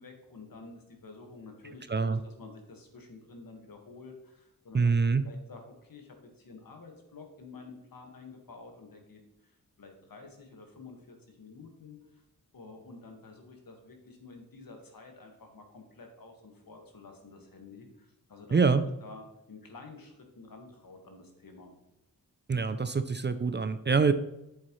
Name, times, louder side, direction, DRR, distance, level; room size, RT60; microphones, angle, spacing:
voice 1, 0.0-12.2 12.5-21.7, left 3 dB, 75° left, 3 dB, 1.7 m, -50 dB
voice 2, 1.9-2.2 4.7-5.2 18.5-18.8 22.5-24.1, right 5 dB, 30° right, 11 dB, 0.4 m, -25 dB
8.2 x 7.4 x 3.1 m, 0.88 s
wide cardioid pair, 110°, 35 cm